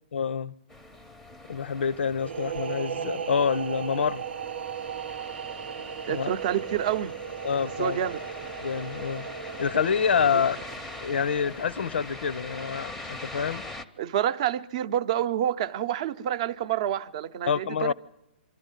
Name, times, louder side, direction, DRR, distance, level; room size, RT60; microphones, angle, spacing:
voice 1, 0.1-0.5 1.5-4.2 6.1-6.3 7.4-8.1 8.6-9.3 9.6-10.6 11.0-13.6 17.5-17.9, left 6 dB, 80° left, 0.7 m, -27 dB
sound 1, 0.7-13.8, left 2 dB, 5° left, 0.7 m, -42 dB
sound 2, 2.2-11.7, right 8 dB, 75° right, 0.7 m, -37 dB
voice 2, 6.1-7.2 7.6-8.2 10.3-10.4 14.0-17.9, right 10 dB, 35° right, 0.7 m, -28 dB
25.5 x 13.0 x 9.1 m
hypercardioid pair, 165°, 6 cm